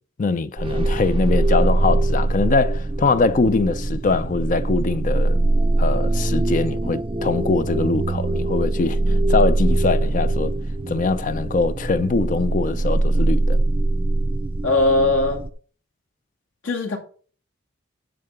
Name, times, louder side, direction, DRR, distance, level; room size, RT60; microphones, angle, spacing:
voice 1, 0.2-5.4 5.8-10.5 10.9-13.6, left 3 dB, 40° left, 0.4 m, -22 dB
sound 1, 0.6-15.5, right 2 dB, 25° right, 0.5 m, -22 dB
voice 2, 14.6-15.4 16.6-17.0, left 2 dB, 80° left, 2.3 m, -19 dB
10.5 x 3.8 x 6.7 m
head